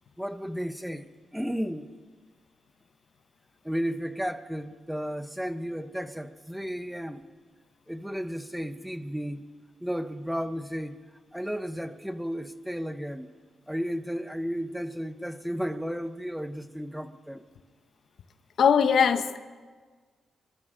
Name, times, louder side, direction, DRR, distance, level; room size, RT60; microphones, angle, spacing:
voice 1, 0.2-1.9 3.6-7.2 7.9-9.5 9.8-11.0 11.3-13.3 13.7-17.5, equal, ahead, 0.9 m, -33 dB
voice 2, 18.6-19.4, left 7 dB, 70° left, 0.9 m, -20 dB
28.0 x 13.5 x 3.8 m
cardioid pair, 95°, 0 cm